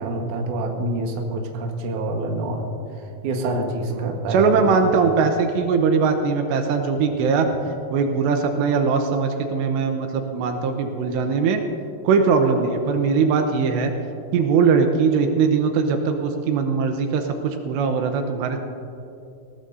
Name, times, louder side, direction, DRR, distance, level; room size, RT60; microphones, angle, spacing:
voice 1, 0.0-2.7 3.2-4.7, right 2 dB, 60° right, 2 dB, 2.3 m, -26 dB
voice 2, 3.9-7.5 7.9-11.6 12.0-13.9 14.3-18.6, right 5 dB, 80° right, 5 dB, 3.0 m, -20 dB
20.0 x 18.0 x 2.7 m, 2.7 s
omnidirectional pair, 5.1 m